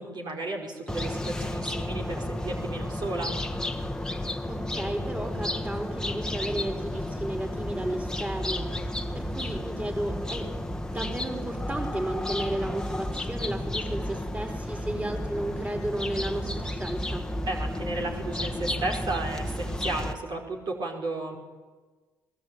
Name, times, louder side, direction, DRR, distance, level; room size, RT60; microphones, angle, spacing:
voice 1, 0.0-3.3 17.5-21.4, right 2 dB, 55° right, 1 dB, 4.9 m, -33 dB
sound 1, 0.9-20.1, left 1 dB, 10° left, 1.6 m, -32 dB
voice 2, 4.2-10.5 10.9-17.3, right 1 dB, 15° right, 3 dB, 4.6 m, -33 dB
22.5 x 20.0 x 8.9 m, 1.4 s
supercardioid pair, 60°, 9 cm